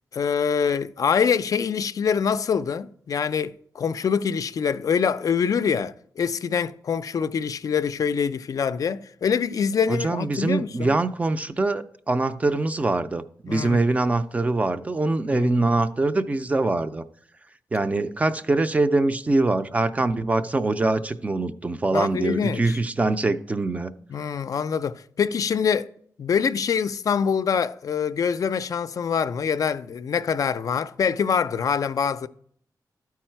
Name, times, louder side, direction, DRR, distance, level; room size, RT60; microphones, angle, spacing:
voice 1, 0.1-10.9 13.5-13.8 15.3-15.5 21.9-22.8 24.1-25.9 26.2-32.3, left 6 dB, 55° left, 0.3 m, -25 dB
voice 2, 9.9-17.0 17.7-23.9, right 2 dB, 20° right, 0.4 m, -23 dB
12.5 x 4.7 x 4.4 m
wide cardioid pair, 170°, 7 cm